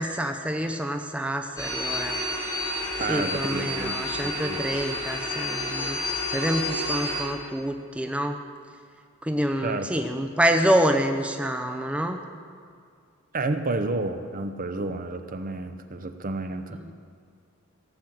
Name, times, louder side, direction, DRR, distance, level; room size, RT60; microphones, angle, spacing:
voice 1, 0.0-2.2 3.1-6.0 6.3-8.4 9.2-12.2 16.8-16.9, equal, 5° right, 5 dB, 0.6 m, -27 dB
sound 1, 1.6-7.2, left 1 dB, 15° left, 3.1 m, -30 dB
voice 2, 3.0-4.6 9.6-10.0 13.3-16.9, right 2 dB, 40° right, 8 dB, 0.7 m, -31 dB
16.5 x 7.5 x 7.6 m, 2.2 s
head